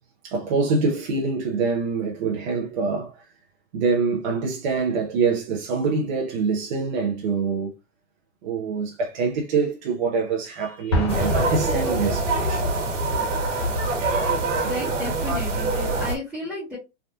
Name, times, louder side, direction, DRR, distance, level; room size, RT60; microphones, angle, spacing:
voice 1, 0.2-3.3 3.7-7.7 8.4-12.7, right 4 dB, 40° right, 0.6 m, -25 dB
Explosion, 10.9-12.7, left 1 dB, 25° left, 0.4 m, -27 dB
sound 1, 11.1-16.2, right 2 dB, 75° right, 1.3 m, -24 dB
voice 2, 14.3-16.8, left 1 dB, ahead, 0.8 m, -33 dB
3.5 x 2.3 x 2.6 m
supercardioid pair, 165°, 38 cm